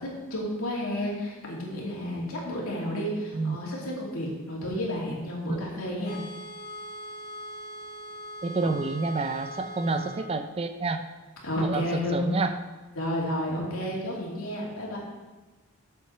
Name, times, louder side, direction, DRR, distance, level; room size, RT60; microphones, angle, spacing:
voice 1, 0.0-6.2 9.8-10.0 11.4-12.4 13.0-15.0, left 1 dB, 75° left, -3 dB, 2.6 m, -31 dB
sound 1, 6.0-10.2, equal, 15° left, 2.4 m, -41 dB
voice 2, 8.4-11.1 11.6-12.5 13.7-13.8, right 3 dB, 25° right, 9 dB, 0.4 m, -29 dB
7.8 x 7.2 x 4.5 m, 1.2 s
head